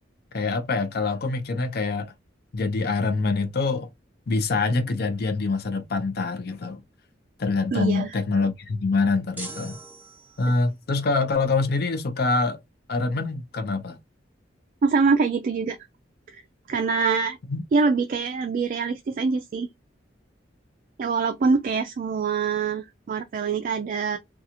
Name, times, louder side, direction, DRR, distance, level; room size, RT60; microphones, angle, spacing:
voice 1, 0.3-2.1 2.5-3.9 4.3-6.8 7.4-9.8 10.4-12.6 12.9-14.0 17.5-17.6, left 3 dB, 60° left, 0.5 m, -25 dB
voice 2, 7.7-8.1 14.8-15.8 16.3-16.4 16.7-17.4 17.7-19.7 21.0-24.2, right 4 dB, 45° right, 0.3 m, -24 dB
sound 1, 9.4-10.7, right 2 dB, 10° right, 0.7 m, -41 dB
2.8 x 2.3 x 2.4 m
head